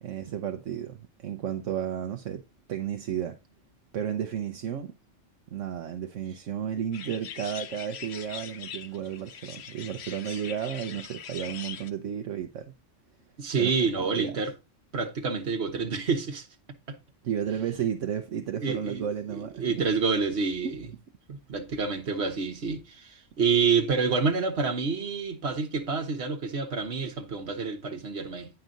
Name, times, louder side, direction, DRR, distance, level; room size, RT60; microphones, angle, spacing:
voice 1, 0.0-2.4 2.7-3.4 3.9-4.9 5.5-12.7 13.6-13.7 14.0-14.4 17.2-19.9, right 9 dB, 75° right, 1.1 m, -33 dB
sound 1, 6.9-11.9, left 8 dB, 60° left, 1.0 m, -41 dB
voice 2, 13.4-14.5 14.9-16.4 16.9-17.0 18.6-19.0 19.3-20.9 21.3-28.5, right 5 dB, 55° right, 1.6 m, -28 dB
9.2 x 5.5 x 3.9 m
omnidirectional pair, 1.3 m